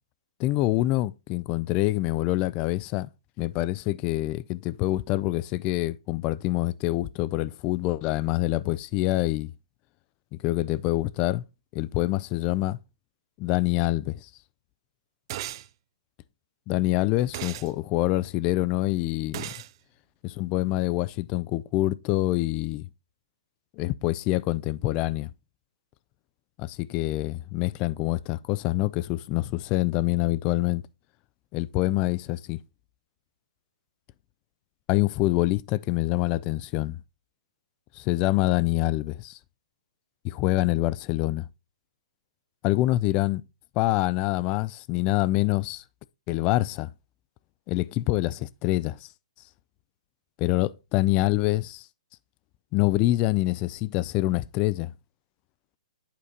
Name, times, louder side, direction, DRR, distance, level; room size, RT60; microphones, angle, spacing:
voice 1, 0.4-3.1 3.4-9.5 10.4-11.4 11.7-12.8 13.4-14.3 16.7-19.5 20.2-22.9 23.8-25.3 26.6-30.8 31.5-32.6 34.9-37.0 38.0-39.4 40.2-41.5 42.6-43.4 43.8-45.8 46.3-46.9 47.7-49.1 50.4-51.9 52.7-54.9, left 17 dB, 30° left, 0.3 m, -26 dB
sound 1, 15.3-15.7 17.3-17.7 19.3-19.7, right 13 dB, 45° right, 0.4 m, -35 dB
8.5 x 5.0 x 2.7 m
hypercardioid pair, 130°, 3 cm